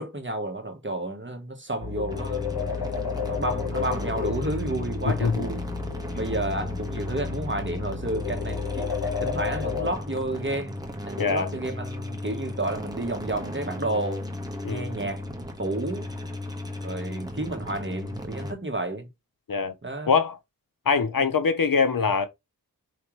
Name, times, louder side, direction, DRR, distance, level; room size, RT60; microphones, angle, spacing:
voice 1, 0.0-2.5 3.3-5.7 6.1-10.8 11.1-14.3 14.7-15.3 15.6-16.1 16.8-19.1 19.8-20.1, right 2 dB, 30° right, 1.2 m, -31 dB
sound 1, 1.8-9.9, left 6 dB, 85° left, 1.2 m, -32 dB
sound 2, 2.1-18.5, left 1 dB, 10° right, 1.3 m, -36 dB
voice 2, 5.0-5.4 11.2-11.5 14.6-14.9 19.5-19.7 20.1-20.4 20.9-22.3, left 5 dB, 65° left, 0.7 m, -23 dB
5.0 x 3.3 x 3.1 m
wide cardioid pair, 40°, 36 cm